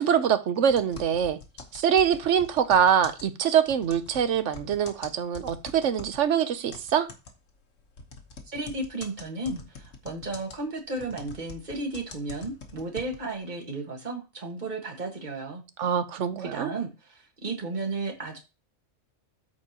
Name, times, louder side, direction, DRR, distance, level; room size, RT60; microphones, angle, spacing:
voice 1, 0.0-1.4 1.7-7.1 15.8-16.7, right 8 dB, 75° right, 1.1 m, -24 dB
sound 1, 0.7-6.3 6.7-13.4, left 3 dB, 80° left, 1.5 m, -44 dB
voice 2, 8.5-15.6 16.4-18.4, right 2 dB, 40° right, 1.8 m, -34 dB
13.5 x 4.6 x 2.9 m
omnidirectional pair, 1.3 m